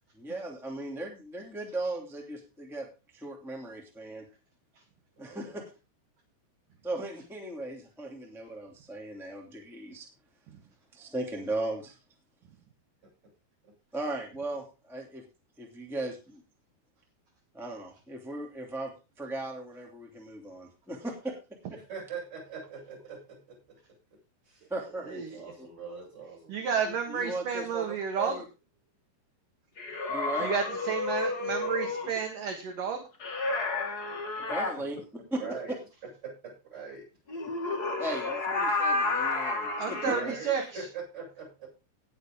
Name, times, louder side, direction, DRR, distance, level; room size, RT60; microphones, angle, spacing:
voice 1, 0.1-2.9 3.1-4.3 5.2-5.6 6.8-10.1 10.9-11.9 13.9-15.2 15.6-16.4 17.5-21.4 24.7-25.2 26.8-27.8 28.2-28.4 30.1-30.5 34.5-35.0 38.0-40.1, right 2 dB, ahead, 0 dB, 1.3 m, -37 dB
voice 2, 5.2-5.7 13.6-13.7 21.7-23.6 24.5-24.7 25.1-26.6 30.3-30.5 30.8-30.9 31.2-31.5 34.8-35.0 35.3-35.8 36.2-37.0 40.0-41.7, right 5 dB, 20° right, -2 dB, 8.3 m, -42 dB
voice 3, 26.5-28.4 30.4-33.1 39.8-40.9, right 6 dB, 60° right, 3 dB, 2.6 m, -31 dB
sound 1, 29.8-32.2 33.2-34.7 37.3-40.2, left 3 dB, 55° left, 1.0 m, -31 dB
18.5 x 6.9 x 3.9 m, 0.31 s
omnidirectional pair, 5.5 m